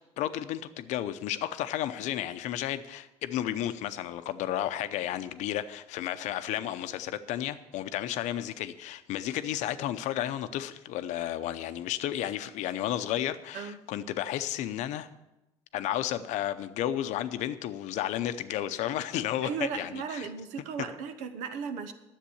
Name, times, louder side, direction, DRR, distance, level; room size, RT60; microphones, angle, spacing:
voice 1, 0.2-15.1 15.7-20.3, left 12 dB, 75° left, 11 dB, 0.7 m, -32 dB
voice 2, 13.5-13.8 19.4-21.9, right 6 dB, 80° right, 9 dB, 1.0 m, -36 dB
10.5 x 7.5 x 7.0 m, 0.99 s
supercardioid pair, 75°, 12 cm